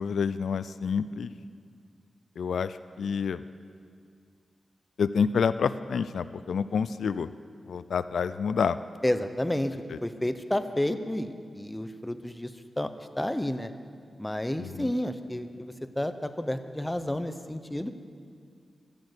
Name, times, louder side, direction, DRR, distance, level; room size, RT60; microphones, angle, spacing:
voice 1, 0.0-1.3 2.4-3.4 5.0-7.3 7.7-8.8 9.9-10.0 14.6-14.9, left 6 dB, 85° left, 14 dB, 0.4 m, -28 dB
voice 2, 9.0-9.8 10.0-13.7 14.2-17.9, left 1 dB, 10° left, 9 dB, 0.7 m, -31 dB
13.5 x 10.5 x 8.0 m, 2.2 s
wide cardioid pair, 115°, 0 cm